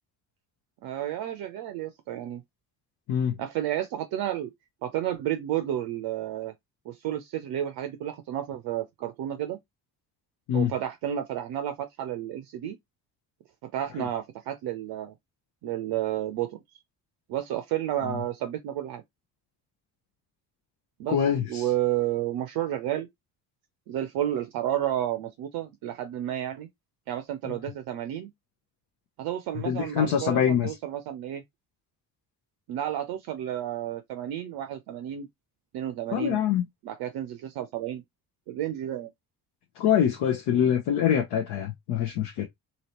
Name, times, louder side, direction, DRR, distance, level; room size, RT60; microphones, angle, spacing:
voice 1, 0.8-2.4 3.4-4.5 4.8-6.5 6.9-9.6 10.5-12.8 13.6-15.1 15.6-16.6 17.3-19.0 21.0-21.2 21.5-23.1 23.9-26.7 27.1-28.3 29.2-31.4 32.7-35.3 35.7-36.4 36.8-38.0 38.5-39.1, right 12 dB, 50° right, 0.6 m, -31 dB
voice 2, 21.1-21.7 27.5-27.6 29.7-30.7 36.1-36.6 39.8-42.5, left 9 dB, 50° left, 0.7 m, -25 dB
2.8 x 2.8 x 2.9 m
figure-of-eight pair, 45°, 48 cm